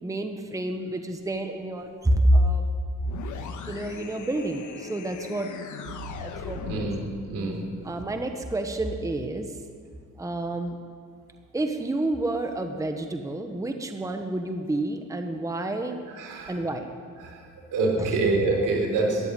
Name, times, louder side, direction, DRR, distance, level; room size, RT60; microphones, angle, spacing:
voice 1, 0.0-2.7 3.7-5.5 6.2-6.9 7.8-9.5 10.2-10.8 11.5-16.0 16.5-16.9 18.0-18.1, right 1 dB, 10° right, 5 dB, 1.0 m, -28 dB
sound 1, 3.0-7.1, left 6 dB, 70° left, 1.5 m, -39 dB
voice 2, 6.6-7.7 16.2-16.5 17.2-17.4 17.7-19.3, right 3 dB, 80° right, 1 dB, 3.5 m, -26 dB
14.0 x 10.0 x 8.8 m, 2.1 s
cardioid pair, 105°, 31 cm